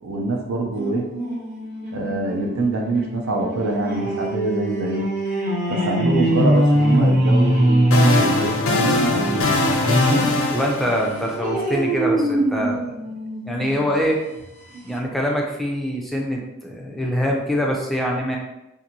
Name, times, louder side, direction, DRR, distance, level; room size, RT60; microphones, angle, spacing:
voice 1, 0.0-1.1 1.9-5.1 5.7-9.5, right 3 dB, 75° right, 1 dB, 0.5 m, -25 dB
sound 1, 0.8-10.4 10.8-13.9 14.4-14.5 14.7-14.8, right 1 dB, 45° right, 0.7 m, -22 dB
sound 2, 7.5-11.7, left 2 dB, 75° left, 0.5 m, -22 dB
voice 2, 10.5-13.0 13.5-14.2 14.8-18.4, equal, ahead, -1 dB, 0.4 m, -24 dB
2.6 x 2.5 x 2.8 m, 0.92 s
head